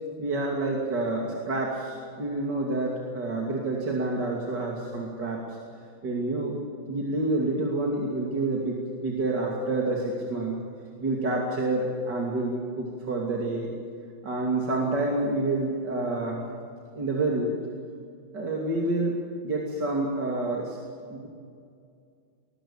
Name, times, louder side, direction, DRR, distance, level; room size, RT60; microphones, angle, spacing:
voice 1, 0.2-5.4 6.0-6.6 6.9-10.6 11.0-13.7 14.2-16.4 16.9-17.6 18.3-20.8 21.1-21.3, right 2 dB, 60° right, -2 dB, 3.3 m, -28 dB
22.0 x 20.5 x 7.2 m, 2.3 s
omnidirectional pair, 2.2 m